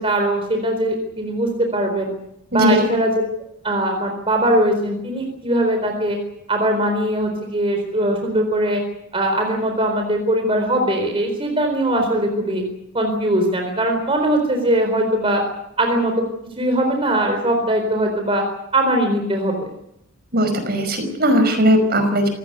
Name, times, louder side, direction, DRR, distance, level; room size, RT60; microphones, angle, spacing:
voice 1, 0.0-2.1 2.5-3.1 3.6-6.2 6.5-8.8 9.1-12.6 12.9-15.4 15.8-16.1 16.6-18.4 18.7-19.7, right 1 dB, 25° right, 3 dB, 4.2 m, -20 dB
voice 2, 2.5-2.9 20.3-22.3, equal, 45° right, 8 dB, 5.4 m, -18 dB
27.0 x 16.5 x 8.2 m, 0.81 s
head